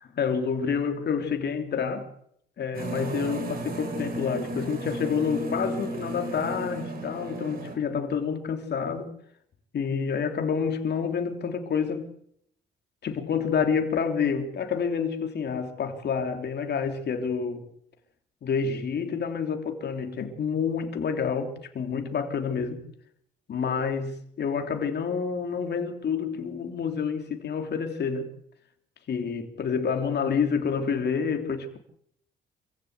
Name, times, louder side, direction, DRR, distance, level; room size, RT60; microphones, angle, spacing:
voice 1, 0.1-2.1 2.6-9.1 9.7-12.1 13.0-17.6 18.4-22.8 23.5-28.3 29.1-31.8, left 6 dB, 55° left, 3.3 m, -28 dB
sound 1, 2.7-7.8, right 2 dB, 50° right, 5.5 m, -34 dB
27.0 x 16.0 x 8.1 m
cardioid pair, 90°, 20 cm